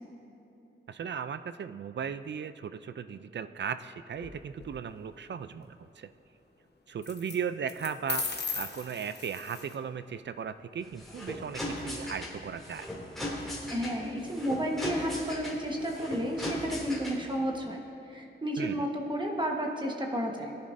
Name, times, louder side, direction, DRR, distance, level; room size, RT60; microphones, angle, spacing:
voice 1, 0.9-6.1 6.9-12.9 18.6-18.9, right 7 dB, 65° right, 12 dB, 0.4 m, -37 dB
sound 1, 4.1-4.7 7.0-7.4 7.7-9.7, left 4 dB, 55° left, 1.1 m, -36 dB
sound 2, 10.8-17.4, left 1 dB, ahead, 2.6 m, -38 dB
voice 2, 13.7-20.6, equal, 25° right, 0 dB, 1.2 m, -32 dB
18.0 x 10.5 x 2.6 m, 2.9 s
wide cardioid pair, 120°, 20 cm